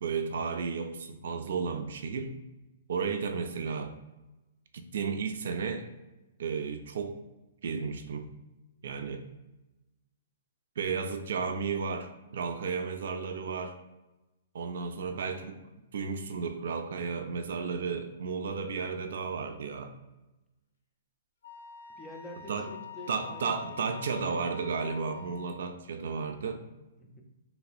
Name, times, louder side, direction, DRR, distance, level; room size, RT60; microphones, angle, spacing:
voice 1, 0.0-2.3 2.9-4.0 4.7-5.9 6.4-7.2 7.6-8.3 8.8-9.2 10.8-13.8 14.5-15.6 15.9-19.9 22.5-22.7 23.1-26.6, right 5 dB, 70° right, 7 dB, 0.3 m, -33 dB
Wind instrument woodwind instrument, 21.4-25.6, left 6 dB, 80° left, 0.5 m, -45 dB
voice 2, 22.0-24.2 27.0-27.2, left 2 dB, 10° left, 1 dB, 0.5 m, -48 dB
3.1 x 2.8 x 2.5 m, 1.0 s
hypercardioid pair, 135°, 0 cm